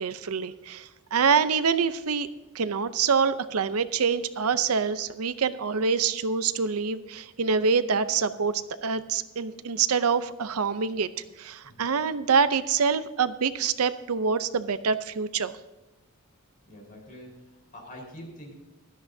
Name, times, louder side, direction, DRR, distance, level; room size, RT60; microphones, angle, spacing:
voice 1, 0.0-2.3 2.5-11.1 11.4-15.5, right 5 dB, 75° right, 13 dB, 0.6 m, -26 dB
voice 2, 11.6-11.9 16.6-18.5, equal, 40° left, 0 dB, 4.4 m, -45 dB
16.5 x 13.0 x 2.7 m, 1.1 s
head